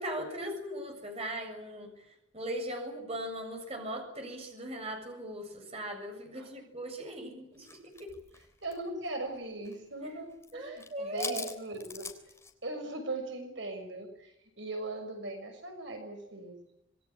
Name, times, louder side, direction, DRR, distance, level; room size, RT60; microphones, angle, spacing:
voice 1, 0.0-1.9 2.3-8.1 10.0-10.1 10.5-11.5, right 1 dB, 30° right, 4 dB, 7.2 m, -39 dB
sound 1, 7.6-9.8 10.1-10.5 10.8-12.5, left 4 dB, 15° left, 3.5 m, -43 dB
voice 2, 8.6-12.1 12.6-16.6, right 2 dB, 60° right, 5 dB, 6.3 m, -39 dB
27.5 x 21.5 x 8.7 m, 0.81 s
head